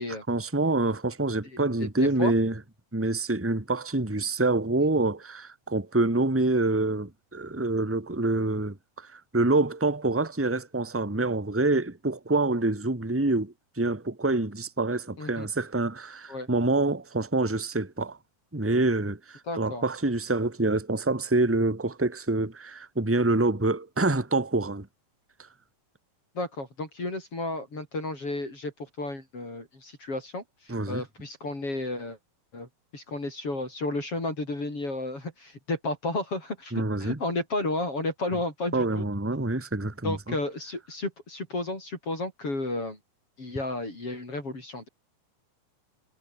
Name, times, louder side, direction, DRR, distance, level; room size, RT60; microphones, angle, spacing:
voice 1, 0.3-2.6 2.9-18.2 18.5-24.9 30.7-31.0 36.7-37.2 38.7-40.3, right 2 dB, 5° right, 2.5 m, -26 dB
voice 2, 1.5-2.3 15.2-15.5 16.3-16.5 19.5-19.8 26.4-32.2 32.5-39.1 40.0-43.0 43.4-44.9, left 2 dB, 40° left, 7.8 m, -33 dB
omnidirectional pair, 4.2 m